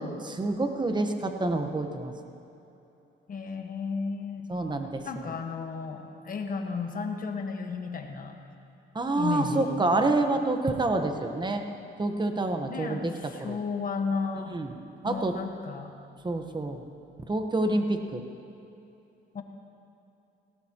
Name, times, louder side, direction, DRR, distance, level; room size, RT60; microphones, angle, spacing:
voice 1, 0.2-2.1 4.5-5.0 8.9-11.6 12.0-13.1 13.4-13.6 14.4-14.7 15.0-15.3 16.2-16.8 17.3-18.2, right 2 dB, 20° right, 6 dB, 1.1 m, -27 dB
voice 2, 3.3-4.5 5.0-8.4 9.1-9.9 12.7-14.6 15.0-15.9 19.3-19.4, left 4 dB, 45° left, 4 dB, 1.4 m, -33 dB
18.5 x 17.5 x 3.0 m, 2.9 s
cardioid pair, 90°, 20 cm